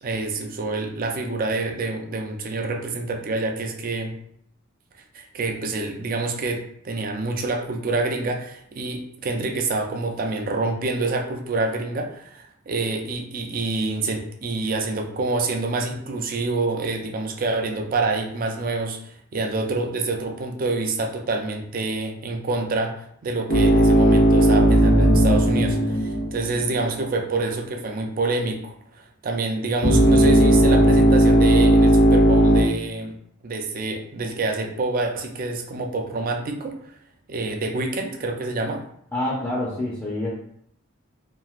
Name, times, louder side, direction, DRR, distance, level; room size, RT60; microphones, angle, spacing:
voice 1, 0.0-4.1 5.1-33.1 33.4-36.8 37.3-38.8, right 3 dB, 45° right, 3 dB, 0.4 m, -27 dB
sound 1, 23.5-26.9 29.8-32.6, right 1 dB, 75° left, 0.9 m, -16 dB
voice 2, 39.1-40.3, left 1 dB, 10° left, -6 dB, 0.5 m, -27 dB
3.0 x 2.5 x 2.4 m, 0.70 s
head